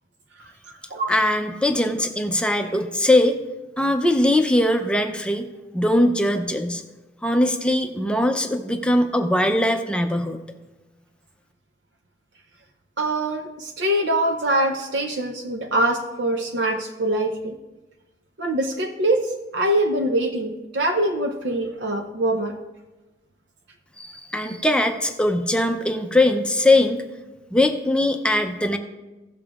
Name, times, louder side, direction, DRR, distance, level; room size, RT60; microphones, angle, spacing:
voice 1, 1.1-3.4 3.8-5.5 5.7-6.8 7.2-10.4 24.0-27.0 27.5-28.8, left 1 dB, 5° left, 5 dB, 0.5 m, -21 dB
voice 2, 13.0-17.6 18.4-22.6, right 1 dB, 70° right, 4 dB, 0.6 m, -23 dB
16.5 x 6.9 x 2.4 m, 1.1 s
head